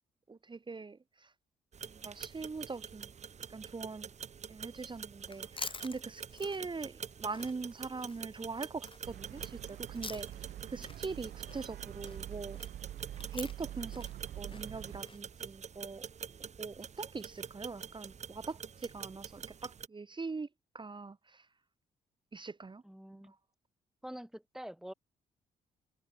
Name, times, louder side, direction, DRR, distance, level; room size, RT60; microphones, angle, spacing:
voice 1, 0.3-1.3 1.9-3.1 3.5-4.1 4.5-12.6 13.3-14.1 14.4-16.1 16.4-20.5 20.7-21.5 22.3-22.8 23.1-23.4, right 4 dB, 30° right, 1.7 m, -42 dB
sound 1, 1.7-19.9, right 7 dB, 45° right, 1.0 m, -46 dB
Chewing mastication, 5.2-10.5 10.8-15.2, left 4 dB, 30° left, 3.0 m, -48 dB
sound 2, 9.0-15.0, right 12 dB, 70° right, 0.8 m, -46 dB
voice 2, 22.8-23.3 24.0-24.9, equal, 5° right, 2.3 m, -46 dB
supercardioid pair, 55°, 16 cm